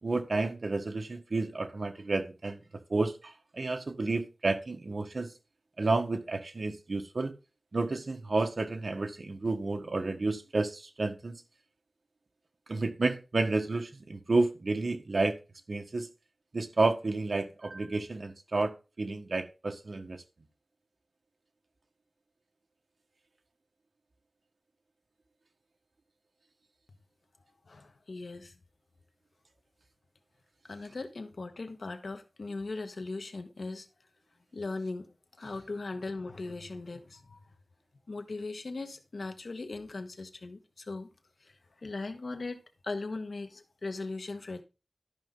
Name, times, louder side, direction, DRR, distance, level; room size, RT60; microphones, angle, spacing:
voice 1, 0.0-2.6 2.9-5.3 5.8-7.3 7.7-11.4 12.7-15.4 15.7-16.1 16.5-20.2, right 3 dB, 70° right, 1.4 m, -31 dB
voice 2, 27.7-28.6 30.7-33.9 34.5-37.4 38.1-41.1 41.4-41.5 41.8-44.6, left 3 dB, 80° left, 1.3 m, -39 dB
13.0 x 5.6 x 3.8 m
wide cardioid pair, 65°, 0 cm